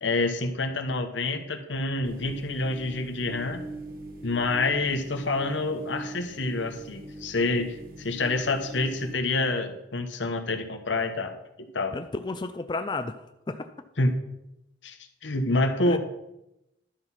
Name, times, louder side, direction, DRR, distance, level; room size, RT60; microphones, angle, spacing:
voice 1, 0.0-3.7 4.2-12.0 14.0-14.1 14.8-15.0 15.2-16.0, left 2 dB, 85° left, 7 dB, 1.1 m, -27 dB
sound 1, 2.0-9.1, right 1 dB, 50° right, 1.2 m, -42 dB
voice 2, 11.9-13.2 13.5-13.7 15.9-16.0, left 3 dB, 25° left, 9 dB, 0.4 m, -32 dB
11.5 x 6.1 x 5.7 m, 0.88 s
head